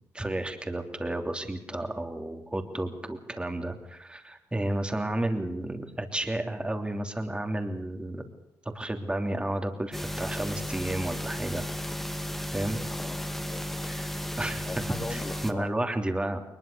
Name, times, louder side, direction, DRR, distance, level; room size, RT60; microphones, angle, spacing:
voice 1, 0.1-8.2 8.7-11.6 12.5-12.8 13.8-14.1 14.4-14.6 15.1-16.4, right 1 dB, 15° right, 5 dB, 3.1 m, -32 dB
sound 1, 9.9-15.5, left 1 dB, 5° left, 2.0 m, -34 dB
voice 2, 12.8-14.0 14.6-15.7, left 2 dB, 25° left, 6 dB, 2.9 m, -41 dB
21.5 x 21.0 x 6.9 m, 0.84 s
supercardioid pair, 70°, 7 cm